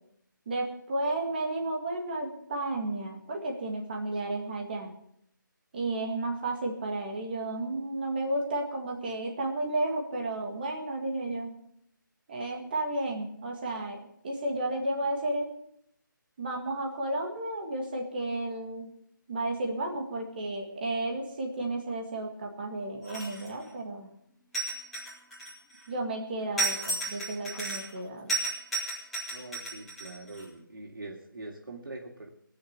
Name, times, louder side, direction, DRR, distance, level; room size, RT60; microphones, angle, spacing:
voice 1, 0.5-4.9 5.7-11.6 12.3-14.0 14.2-15.5 16.4-18.9 19.3-24.1 25.9-28.4, right 2 dB, 25° right, 1 dB, 1.9 m, -32 dB
sound 1, 23.0-23.6 24.5-25.8 26.6-28.0 28.3-30.4, right 2 dB, ahead, 3.1 m, -33 dB
voice 2, 29.3-32.3, right 2 dB, 90° right, -1 dB, 3.0 m, -43 dB
18.0 x 6.5 x 8.7 m, 0.71 s
hypercardioid pair, 175°, 11 cm